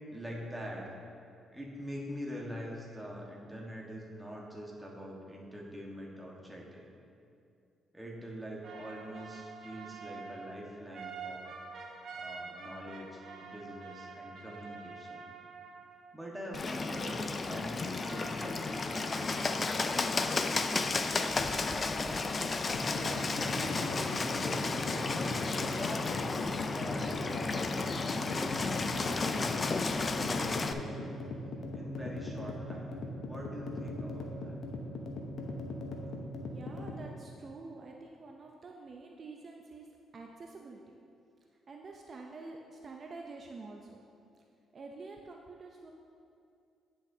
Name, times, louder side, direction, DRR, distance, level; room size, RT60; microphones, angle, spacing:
voice 1, 0.1-0.9 1.5-6.9 7.9-11.6 12.1-15.3 16.1-21.0 21.9-26.0 26.7-31.2 31.7-34.6, equal, 5° right, -3 dB, 1.4 m, -44 dB
sound 1, 8.6-16.2 16.6-20.6, right 4 dB, 65° right, 1.0 m, -48 dB
Bird, 16.5-30.7, left 3 dB, 35° left, 0.4 m, -33 dB
sound 2, 22.7-37.0, left 2 dB, 65° left, 0.9 m, -40 dB
voice 2, 36.4-40.8 41.7-44.0 44.4-44.5 44.7-45.9, right 3 dB, 45° right, 1 dB, 0.5 m, -48 dB
10.0 x 6.4 x 2.7 m, 2.5 s
cardioid pair, 90°, 0 cm